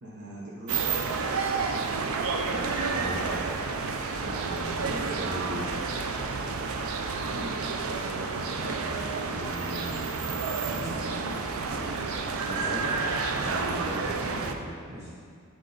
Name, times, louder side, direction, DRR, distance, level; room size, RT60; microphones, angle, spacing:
voice 1, 0.0-0.9 4.8-5.2 7.2-8.1 11.1-11.3, equal, 55° right, -5 dB, 0.9 m, -43 dB
sound 1, 0.7-14.5, right 4 dB, 75° right, 0.5 m, -30 dB
voice 2, 2.7-3.3 4.2-5.8 8.3-9.0 9.3-11.2 11.7-12.0 12.4-13.0 13.3-15.1, equal, 30° right, -8 dB, 1.1 m, -38 dB
8.4 x 4.4 x 3.9 m, 2.1 s
head